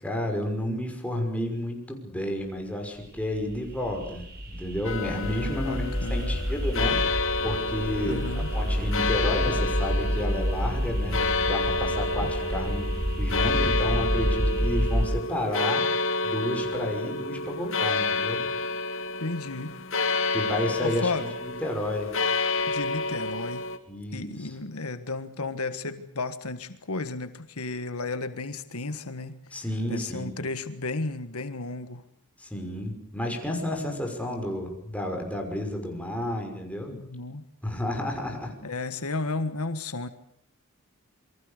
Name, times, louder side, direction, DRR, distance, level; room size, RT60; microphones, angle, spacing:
voice 1, 0.0-7.0 7.4-8.2 8.5-15.8 16.2-18.4 20.3-21.1 21.4-22.1 23.9-24.5 29.5-30.3 32.4-37.0 37.6-38.5, left 1 dB, 5° left, 2 dB, 5.8 m, -31 dB
sound 1, 3.0-15.1, equal, 45° right, 4.4 m, -29 dB
sound 2, 4.8-23.8, left 3 dB, 65° left, 2.3 m, -29 dB
voice 2, 5.6-6.5 8.0-8.5 12.2-12.3 19.2-19.8 20.8-21.2 22.7-23.7 24.1-29.6 29.9-32.1 36.9-37.4 38.6-40.1, left 3 dB, 80° left, 10 dB, 1.6 m, -33 dB
28.0 x 23.5 x 6.7 m, 0.67 s
head